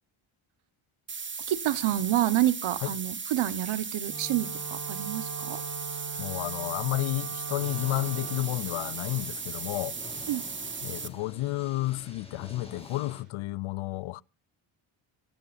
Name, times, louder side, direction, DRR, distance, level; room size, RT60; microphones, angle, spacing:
sound 1, 1.1-11.1, right 5 dB, 25° right, 1.3 m, -37 dB
voice 1, 1.5-5.6 10.3-10.4, right 13 dB, 75° right, 1.3 m, -28 dB
Wind instrument woodwind instrument, 4.0-8.5, right 6 dB, 40° right, 4.1 m, -40 dB
voice 2, 6.2-10.0 10.8-14.2, left 18 dB, 75° left, 0.6 m, -31 dB
sound 2, 7.6-13.2, left 2 dB, 10° left, 5.6 m, -47 dB
25.0 x 14.0 x 2.5 m
cardioid pair, 120°, 49 cm